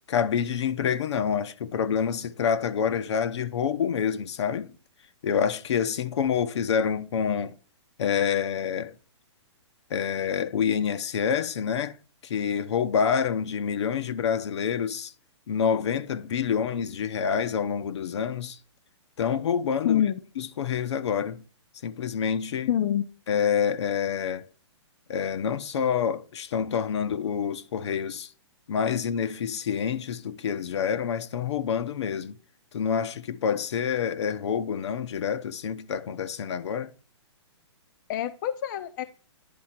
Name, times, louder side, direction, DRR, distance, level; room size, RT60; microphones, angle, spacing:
voice 1, 0.1-4.7 5.2-7.5 8.0-8.9 9.9-11.9 12.2-15.1 15.5-18.6 19.2-20.0 20.4-21.4 21.8-22.7 23.3-24.4 25.1-28.3 28.7-32.4 32.7-36.9, left 7 dB, 70° left, 0.8 m, -27 dB
voice 2, 19.8-20.2 22.7-23.0 38.1-39.0, left 10 dB, 40° left, 0.6 m, -26 dB
10.5 x 3.8 x 5.8 m
hypercardioid pair, 155°, 15 cm